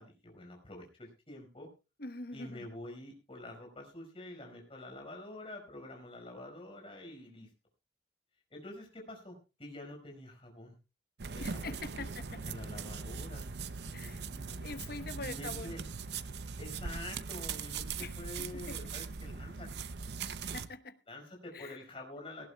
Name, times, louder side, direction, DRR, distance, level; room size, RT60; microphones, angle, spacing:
voice 1, 0.0-1.7 2.3-7.5 8.5-10.7 11.3-13.4 13.8-14.6 15.2-15.8 16.6-19.7 21.1-22.5, left 1 dB, 30° left, 1 dB, 5.1 m, -47 dB
voice 2, 2.0-2.7 11.4-12.4 13.9-14.2 14.6-15.7 18.0-18.8 20.5-21.0 21.5-21.8, left 3 dB, 55° left, 11 dB, 1.1 m, -44 dB
sound 1, 11.2-20.7, right 5 dB, 65° right, 0.7 m, -40 dB
18.5 x 17.0 x 2.3 m, 0.29 s
head